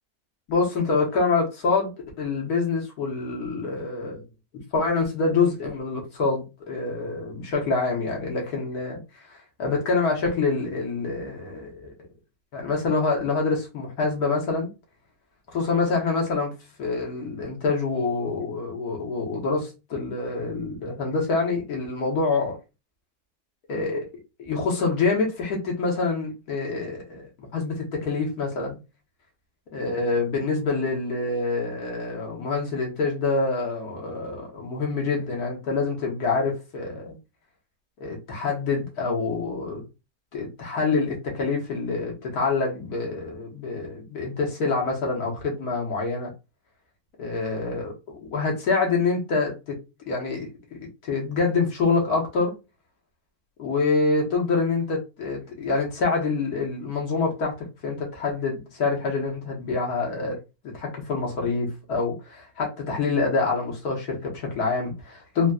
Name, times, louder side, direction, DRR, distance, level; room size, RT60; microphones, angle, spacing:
voice 1, 0.5-4.2 4.5-9.0 9.3-11.9 12.5-14.7 15.5-16.5 16.8-22.6 23.7-24.0 24.4-28.8 29.7-37.2 38.0-39.8 40.3-46.3 47.2-49.8 50.1-50.5 50.8-52.5 53.6-60.4 60.7-65.5, left 4 dB, 75° left, 1.6 m, -26 dB
4.0 x 2.1 x 2.3 m
omnidirectional pair, 1.6 m